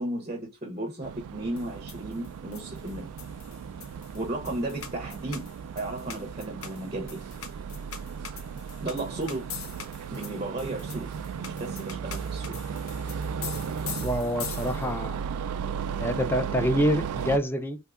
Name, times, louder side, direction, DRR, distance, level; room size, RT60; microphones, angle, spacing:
voice 1, 0.0-3.1 4.1-7.2 8.8-9.4 10.1-11.1 11.4-12.5, right 1 dB, 30° right, 0.7 m, -34 dB
sound 1, 1.0-17.4, right 7 dB, 85° right, 0.3 m, -35 dB
sound 2, 1.6-15.1, left 7 dB, 70° left, 0.8 m, -43 dB
voice 2, 14.0-15.2 16.0-17.8, equal, 10° left, 0.4 m, -26 dB
3.3 x 2.7 x 2.4 m
head